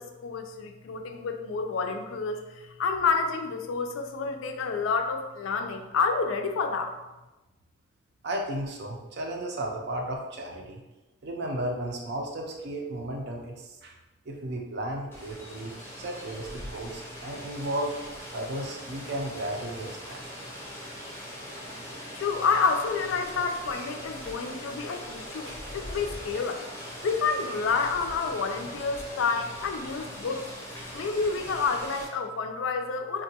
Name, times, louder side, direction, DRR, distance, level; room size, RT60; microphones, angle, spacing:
voice 1, 0.0-6.9 22.1-26.6 27.0-30.5 30.9-33.2, left 4 dB, 75° left, 5 dB, 0.3 m, -29 dB
voice 2, 8.2-10.8 11.2-14.0 14.3-18.0 18.3-20.2, right 1 dB, 55° right, 1 dB, 0.5 m, -34 dB
Rain, 15.1-32.1, equal, 10° left, 0.6 m, -41 dB
3.5 x 2.2 x 2.8 m, 1.1 s
head